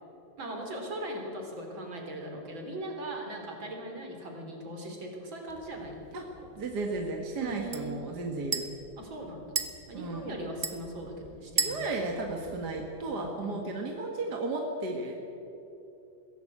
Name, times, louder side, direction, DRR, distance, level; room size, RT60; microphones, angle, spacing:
voice 1, 0.4-6.0 7.4-7.9 9.0-9.6 9.9-11.8 13.2-13.6, right 1 dB, 75° right, 2 dB, 4.5 m, -39 dB
sound 1, 5.5-13.3, right 4 dB, 30° right, 1.2 m, -39 dB
voice 2, 6.6-8.7 9.9-10.4 11.6-15.2, right 3 dB, 55° right, 1 dB, 2.3 m, -34 dB
22.0 x 16.5 x 8.6 m, 3.0 s
omnidirectional pair, 2.2 m